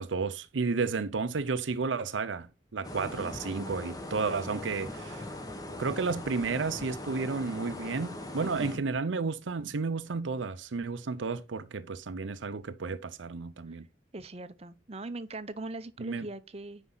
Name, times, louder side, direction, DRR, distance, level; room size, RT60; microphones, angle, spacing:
voice 1, 0.0-5.3 5.8-13.9 16.0-16.3, right 4 dB, 85° right, 0.6 m, -32 dB
sound 1, 2.8-8.8, left 1 dB, 20° left, 1.3 m, -40 dB
voice 2, 8.4-8.9 13.7-13.8 14.1-16.8, right 2 dB, 35° right, 0.7 m, -41 dB
9.6 x 5.3 x 3.9 m
head